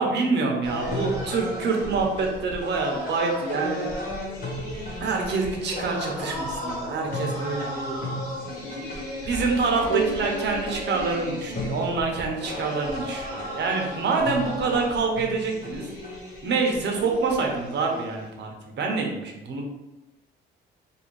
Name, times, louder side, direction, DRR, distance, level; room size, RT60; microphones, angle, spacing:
voice 1, 0.0-3.9 5.0-8.0 8.8-9.0 9.2-15.9 16.4-18.5 18.8-19.7, right 4 dB, 60° right, 1 dB, 0.7 m, -26 dB
sound 1, 0.6-18.3, left 1 dB, 45° left, 1.2 m, -34 dB
sound 2, 9.9-13.2, right 5 dB, 85° left, 0.8 m, -36 dB
2.7 x 2.5 x 3.1 m, 1.0 s
cardioid pair, 90°, 20 cm